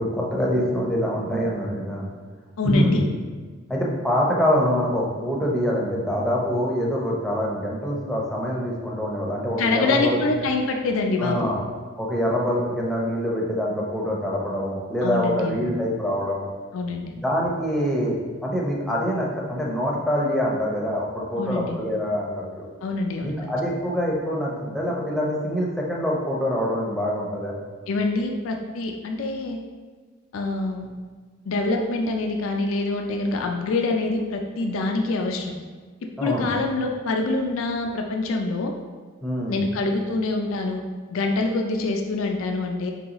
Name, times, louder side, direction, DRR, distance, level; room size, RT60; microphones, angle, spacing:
voice 1, 0.0-2.1 2.6-3.0 3.7-10.2 11.2-11.6 12.0-16.5 17.1-18.2 18.4-22.7 23.2-27.5 36.2-36.5 39.2-39.7, equal, ahead, -4 dB, 0.7 m, -25 dB
voice 2, 2.6-3.1 9.6-11.5 15.0-15.7 16.7-17.2 21.4-21.8 22.8-23.4 27.9-29.6 30.3-30.9 31.5-35.5 36.2-38.7 39.5-40.8 41.1-42.9, left 3 dB, 70° left, 3 dB, 0.4 m, -25 dB
4.6 x 3.8 x 2.9 m, 1.5 s
head